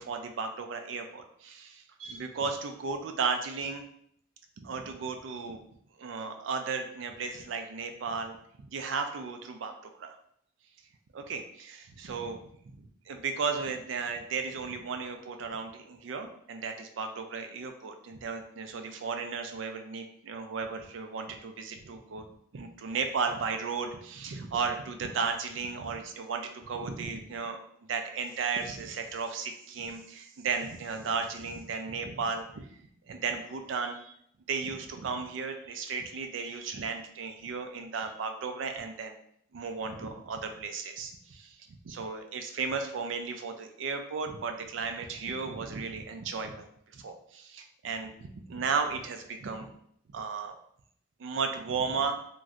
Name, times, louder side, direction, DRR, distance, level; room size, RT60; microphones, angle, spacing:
voice 1, 0.0-3.8 4.6-5.6 6.0-10.1 11.1-12.4 12.8-22.3 22.5-27.6 27.9-32.7 33.1-34.1 34.5-39.2 39.5-41.5 41.8-46.6 46.9-49.7 50.1-50.5 51.2-52.2, right 5 dB, 75° right, 5 dB, 0.4 m, -35 dB
3.1 x 2.6 x 2.4 m, 0.68 s
head